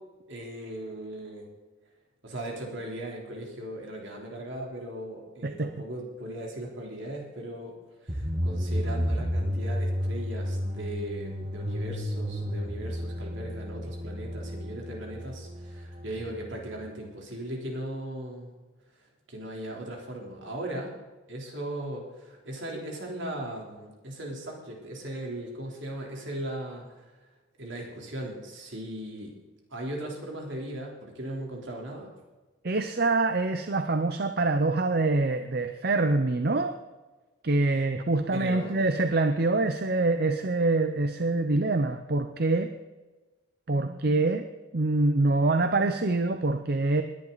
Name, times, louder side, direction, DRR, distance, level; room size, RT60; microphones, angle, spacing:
voice 1, 0.3-1.5 2.2-7.7 8.0-18.5 19.3-21.0 21.3-27.1 27.6-29.4 29.7-32.1 38.3-38.8, right 1 dB, 70° right, -1 dB, 3.7 m, -38 dB
sound 1, 8.1-16.9, equal, 25° right, 1.5 m, -32 dB
voice 2, 32.6-36.7 37.4-42.7 43.7-44.5 44.7-47.0, right 2 dB, 50° right, 8 dB, 0.7 m, -25 dB
20.0 x 11.0 x 4.1 m, 1.2 s
head